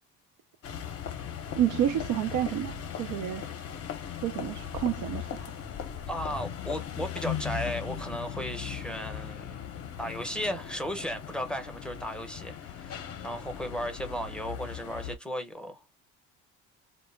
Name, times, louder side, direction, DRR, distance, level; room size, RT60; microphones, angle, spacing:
sound 1, 0.6-15.2, left 9 dB, 45° left, 0.6 m, -38 dB
voice 1, 1.6-2.7 3.0-3.4 4.2-5.2, right 11 dB, 70° right, 0.5 m, -28 dB
voice 2, 6.1-9.6 10.0-16.0, equal, 5° left, 0.7 m, -35 dB
2.1 x 2.0 x 3.1 m
supercardioid pair, 85°, 32 cm